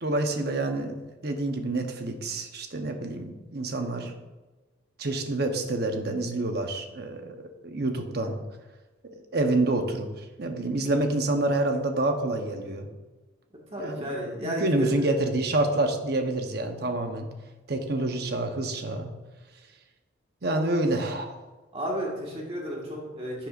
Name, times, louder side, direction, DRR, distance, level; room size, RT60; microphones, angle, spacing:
voice 1, 0.0-4.1 5.0-8.4 9.3-12.9 13.8-14.0 14.4-17.3 17.7-19.1 20.4-21.4, right 2 dB, 50° right, 5 dB, 0.9 m, -28 dB
voice 2, 13.7-14.9 21.7-23.5, equal, 30° right, -2 dB, 1.6 m, -32 dB
11.5 x 7.4 x 2.5 m, 1.2 s
head